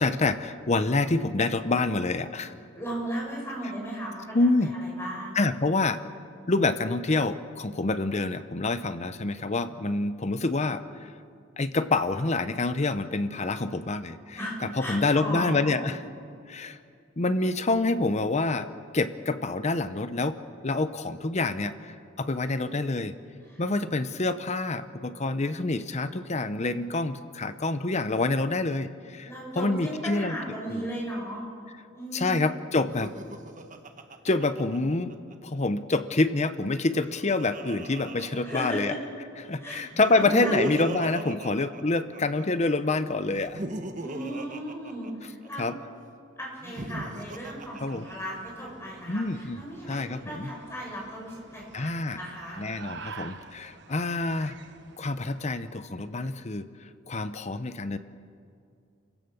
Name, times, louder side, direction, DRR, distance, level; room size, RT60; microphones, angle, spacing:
voice 1, 0.0-2.5 4.3-4.7 5.4-6.0 6.5-11.1 11.6-14.4 14.8-16.0 16.5-16.8 17.2-18.7 18.9-20.4 20.6-23.1 23.6-29.3 29.6-30.3 30.7-30.9 32.1-33.1 34.2-35.2 35.4-38.9 39.4-43.6 45.6-45.8 47.8-48.0 49.1-50.5 51.7-52.2 52.6-54.6 55.0-56.7 57.1-58.0, left 3 dB, 35° left, 11 dB, 0.8 m, -27 dB
voice 2, 2.7-5.4 14.4-15.8 23.5-23.6 29.2-31.4 31.9-32.4 38.4-39.0 39.6-40.6 44.0-45.8 46.4-52.6, equal, 15° left, -4 dB, 7.5 m, -36 dB
Laughter, 32.8-35.3 36.7-39.1 39.9-42.4 43.3-45.7 46.6-48.5, right 1 dB, 40° right, 1.4 m, -37 dB
sound 1, 47.0-55.7, right 4 dB, 60° right, 1.2 m, -48 dB
29.5 x 16.5 x 7.1 m, 2.4 s
head